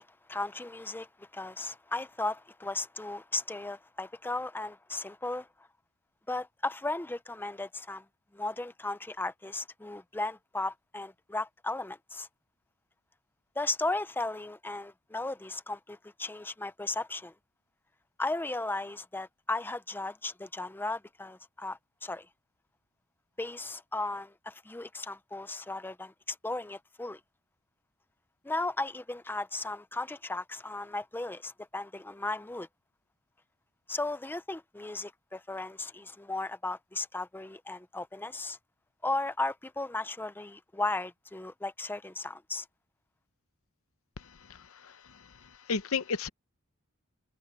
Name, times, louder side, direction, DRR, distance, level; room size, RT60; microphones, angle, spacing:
voice 1, 0.0-5.5 6.3-8.0 8.3-12.3 13.6-17.3 18.2-22.3 23.4-27.2 28.4-32.7 33.9-38.6 39.0-42.7, left 2 dB, 10° left, 0.5 m, -36 dB
voice 2, 44.2-46.3, left 5 dB, 80° left, 0.7 m, -35 dB
head